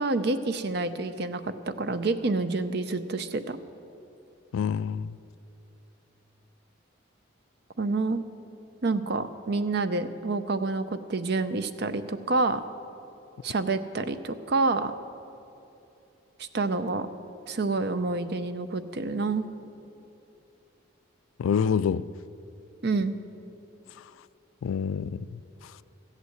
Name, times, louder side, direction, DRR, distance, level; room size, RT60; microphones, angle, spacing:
voice 1, 0.0-3.6 7.8-8.2 8.8-12.6 13.4-14.9 16.4-17.1 17.5-19.5 22.8-23.1, right 3 dB, 55° right, 10 dB, 0.6 m, -28 dB
voice 2, 4.5-5.2 21.4-22.1 24.6-25.7, left 7 dB, 85° left, 17 dB, 0.3 m, -27 dB
14.5 x 8.3 x 7.9 m, 2.9 s
head